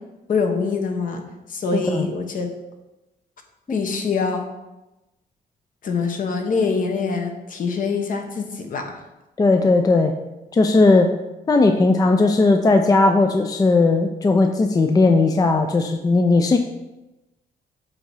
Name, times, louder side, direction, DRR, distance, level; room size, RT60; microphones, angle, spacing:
voice 1, 0.3-1.2 1.5-2.5 3.7-4.4 5.8-9.0, left 4 dB, 55° left, 4 dB, 0.9 m, -24 dB
voice 2, 1.7-2.1 9.4-10.1 10.5-11.1 11.5-16.6, left 3 dB, 20° left, 6 dB, 0.4 m, -17 dB
7.5 x 2.7 x 4.6 m, 1.0 s
cardioid pair, 95°, 17 cm